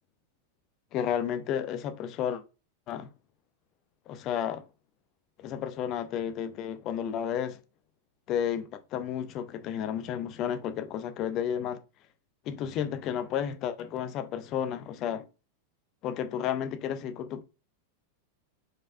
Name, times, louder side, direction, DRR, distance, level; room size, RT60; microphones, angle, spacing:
voice 1, 0.9-2.4 2.9-3.1 4.1-4.6 5.4-7.6 8.3-11.8 12.5-15.3 16.0-17.4, left 9 dB, 35° left, 0.6 m, -32 dB
4.7 x 4.5 x 2.3 m
figure-of-eight pair, 90°, 0 cm